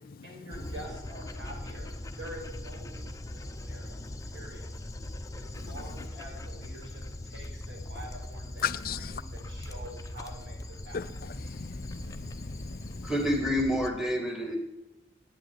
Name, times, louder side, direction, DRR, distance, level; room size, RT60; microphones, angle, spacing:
voice 1, 0.2-1.9 2.2-4.7 5.4-11.2, right 1 dB, 75° right, 5.4 m, -47 dB
Dog, 0.5-13.9, left 1 dB, 15° left, 0.8 m, -40 dB
voice 2, 8.6-9.1 10.9-11.0 11.5-13.1, left 7 dB, 50° left, 0.4 m, -35 dB
voice 3, 13.0-14.6, equal, ahead, 2.2 m, -28 dB
10.0 x 9.1 x 9.8 m
head